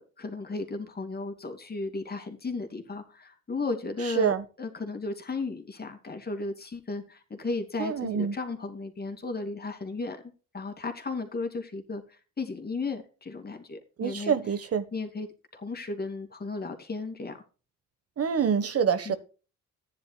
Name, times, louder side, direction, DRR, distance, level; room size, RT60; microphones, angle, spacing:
voice 1, 0.0-10.2 10.5-14.3 14.9-15.3 15.5-17.4 19.0-19.2, left 3 dB, 30° left, 2.7 m, -35 dB
voice 2, 7.8-8.4 14.0-14.8 18.2-19.2, right 7 dB, 50° right, 1.4 m, -26 dB
14.5 x 10.5 x 2.3 m
cardioid pair, 90°, 30 cm